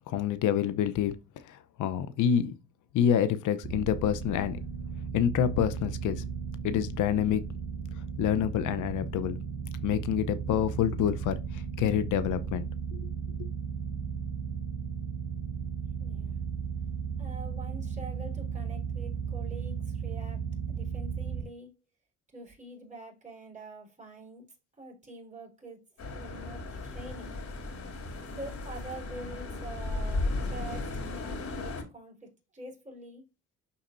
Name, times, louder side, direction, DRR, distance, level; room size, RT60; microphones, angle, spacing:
voice 1, 0.1-1.1 1.5-2.5 2.9-4.6 5.1-6.2 6.6-7.4 8.2-9.4 9.8-13.0 13.4-13.5, left 9 dB, 80° left, 0.8 m, -27 dB
sound 1, 3.6-21.4, right 6 dB, 50° right, 2.6 m, -35 dB
voice 2, 16.0-16.3 17.2-20.4 20.7-21.7 22.3-24.4 24.8-27.3 28.3-33.2, right 2 dB, 25° right, 4.4 m, -46 dB
sound 2, 26.0-31.8, left 2 dB, 65° left, 3.3 m, -35 dB
11.5 x 4.2 x 2.7 m
cardioid pair, 90°, 30 cm